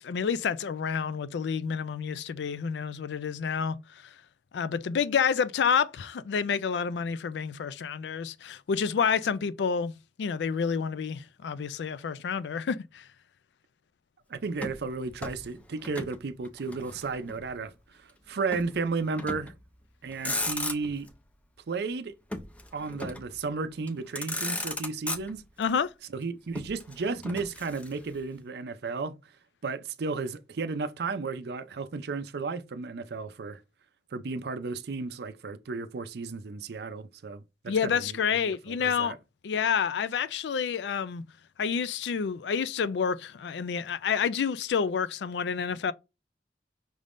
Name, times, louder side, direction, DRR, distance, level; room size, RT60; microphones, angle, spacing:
voice 1, 0.0-3.8 4.5-13.0 25.6-25.9 37.7-39.1 39.4-41.2 41.6-45.9, left 6 dB, 75° left, 0.4 m, -29 dB
voice 2, 14.3-19.5 20.0-21.1 21.7-22.1 22.7-25.4 26.1-29.2 29.6-33.6 34.1-38.2 38.4-38.5 38.8-39.2, right 4 dB, 65° right, 0.5 m, -34 dB
Motor vehicle (road), 14.6-16.2 16.5-17.5 18.5-18.7 19.2-19.6 20.1-21.1 22.3-23.4 23.9-24.0 24.2-25.7 26.5-28.2, left 1 dB, 10° left, 0.5 m, -36 dB
5.2 x 3.5 x 2.5 m
head